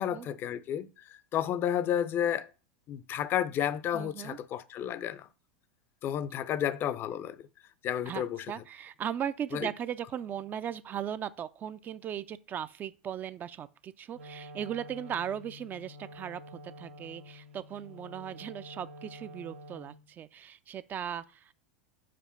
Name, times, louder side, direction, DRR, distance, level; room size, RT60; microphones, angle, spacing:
voice 1, 0.0-2.5 2.9-5.3 6.0-7.4 7.8-8.5 9.5-9.7, left 10 dB, 40° left, 0.5 m, -31 dB
voice 2, 3.9-4.4 8.1-21.5, right 9 dB, 30° right, 0.4 m, -38 dB
Wind instrument woodwind instrument, 14.1-20.1, left 1 dB, 85° right, 1.4 m, -49 dB
5.1 x 5.0 x 5.6 m
hypercardioid pair, 90°, 6 cm